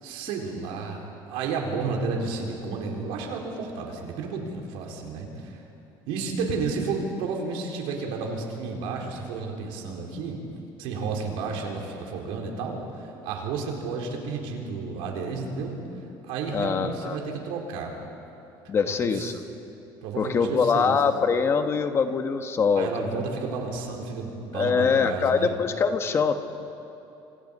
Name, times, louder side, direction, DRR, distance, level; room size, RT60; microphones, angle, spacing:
voice 1, 0.0-5.6 6.1-10.4 10.8-15.8 16.3-18.0 19.0-19.4 20.0-21.0 22.7-25.5, right 4 dB, 85° right, 1 dB, 4.3 m, -32 dB
voice 2, 16.5-17.2 18.7-19.4 20.2-23.2 24.5-26.3, left 5 dB, 30° left, 7 dB, 1.2 m, -23 dB
27.0 x 27.0 x 5.4 m, 2.9 s
cardioid pair, 155°, 9 cm